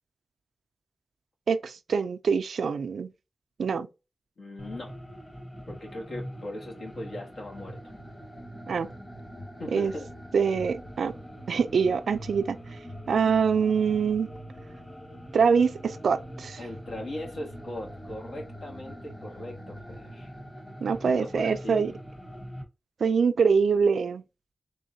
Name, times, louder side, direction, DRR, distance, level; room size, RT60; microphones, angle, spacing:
voice 1, 1.5-3.1 3.6-3.9 8.7-8.9 9.7-9.9 10.3-11.1 11.5-12.6 13.1-14.3 15.3-16.6 20.8-21.9 23.0-24.2, right 6 dB, 85° right, 0.4 m, -24 dB
voice 2, 4.4-4.9 5.7-7.8 9.6-10.1 16.6-20.3 21.0-22.0, left 1 dB, 75° left, 1.6 m, -39 dB
sound 1, 4.6-22.6, equal, 20° left, 1.2 m, -43 dB
3.7 x 3.5 x 2.7 m
cardioid pair, 70°, 0 cm